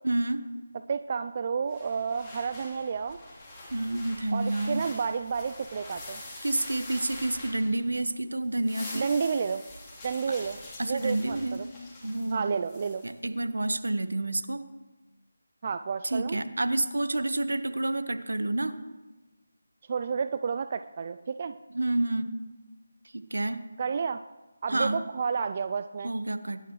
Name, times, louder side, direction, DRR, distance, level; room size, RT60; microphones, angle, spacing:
voice 1, 0.0-0.5 3.7-4.8 6.4-9.1 10.8-11.6 12.0-12.6 13.0-14.6 16.0-18.8 21.7-22.3 23.1-23.6 24.7-25.0 26.0-26.6, right 2 dB, 75° right, 10 dB, 1.2 m, -29 dB
voice 2, 0.9-3.2 4.3-6.2 8.9-9.6 10.0-10.6 10.8-11.7 12.3-13.0 15.6-16.4 19.9-21.5 23.8-24.2 24.6-26.1, right 5 dB, 35° right, 11 dB, 0.4 m, -30 dB
sound 1, 1.7-8.1 8.4-13.1, left 2 dB, 15° left, 3.4 m, -45 dB
23.5 x 11.0 x 3.2 m, 1.2 s
figure-of-eight pair, 160°, 0 cm